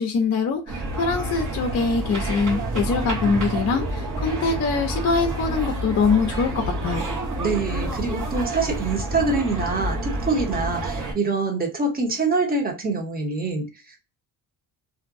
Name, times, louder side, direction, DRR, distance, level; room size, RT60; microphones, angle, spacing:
voice 1, 0.0-7.0, left 4 dB, 40° left, 3 dB, 0.6 m, -23 dB
sound 1, 0.7-11.1, right 1 dB, 50° right, 1.1 m, -28 dB
voice 2, 7.4-13.7, right 3 dB, 20° right, 2 dB, 0.9 m, -25 dB
2.6 x 2.1 x 2.5 m, 0.30 s
cardioid pair, 115°, 40 cm